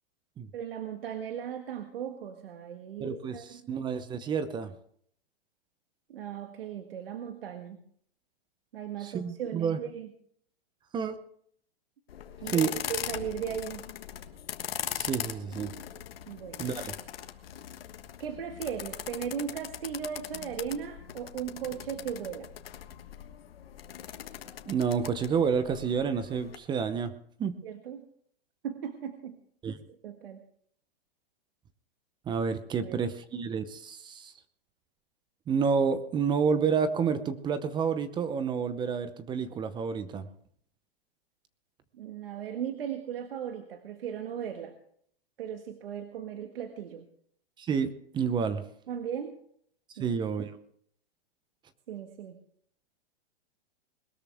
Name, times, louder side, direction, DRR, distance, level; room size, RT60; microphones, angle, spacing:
voice 1, 0.5-3.7 6.1-7.8 8.7-10.1 12.4-13.8 16.3-16.7 18.2-22.5 27.6-28.1 28.6-29.4 30.0-30.4 32.8-33.0 41.9-44.7 45.4-47.1 48.9-49.4 50.0-50.2 51.9-52.4, right 8 dB, 75° right, 6 dB, 1.6 m, -37 dB
voice 2, 3.0-4.7 9.0-9.8 10.9-11.2 12.5-12.7 14.9-15.7 16.6-16.9 24.7-27.1 27.4-27.6 29.6-29.8 32.3-34.3 35.5-40.3 47.6-48.6 50.0-50.5, right 6 dB, 15° right, 12 dB, 0.7 m, -29 dB
sound 1, 12.1-26.6, left 10 dB, 75° left, 1.5 m, -40 dB
21.0 x 13.0 x 3.5 m, 0.64 s
hypercardioid pair, 140°, 29 cm